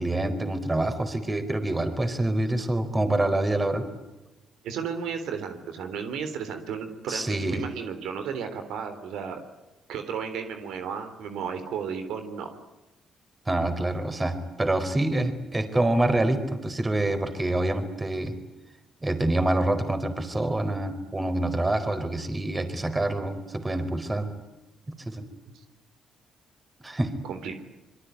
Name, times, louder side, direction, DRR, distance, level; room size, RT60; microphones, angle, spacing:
voice 1, 0.0-3.9 7.1-7.6 13.5-18.3 19.0-24.3 25.1-25.2 26.8-27.1, right 1 dB, 20° right, 9 dB, 4.5 m, -26 dB
voice 2, 4.6-9.4 9.9-12.5 27.2-27.6, right 6 dB, 85° right, 8 dB, 3.6 m, -33 dB
26.5 x 23.5 x 9.5 m, 0.99 s
cardioid pair, 90°, 0 cm